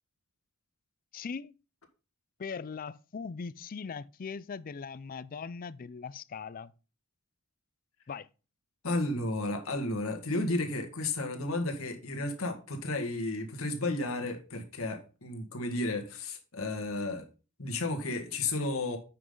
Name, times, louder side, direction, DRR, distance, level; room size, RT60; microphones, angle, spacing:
voice 1, 1.1-1.5 2.4-6.7 8.1-8.3, left 5 dB, 40° left, 0.4 m, -40 dB
voice 2, 8.8-17.3 17.6-19.0, left 2 dB, 75° left, 1.9 m, -33 dB
9.3 x 6.0 x 3.9 m
head